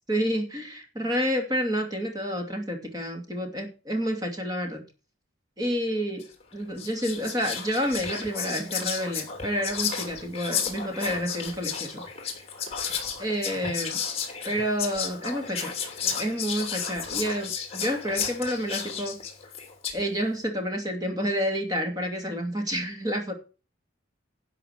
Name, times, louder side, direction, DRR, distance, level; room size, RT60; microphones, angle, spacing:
voice 1, 0.1-4.8 5.6-6.2 6.5-12.0 13.2-14.0 14.4-15.7 16.2-19.2 19.9-23.3, equal, 20° right, 3 dB, 2.6 m, -29 dB
Whispering, 6.2-6.4 6.8-20.1, left 7 dB, 30° left, 2.8 m, -33 dB
11.5 x 5.7 x 6.6 m, 0.34 s
head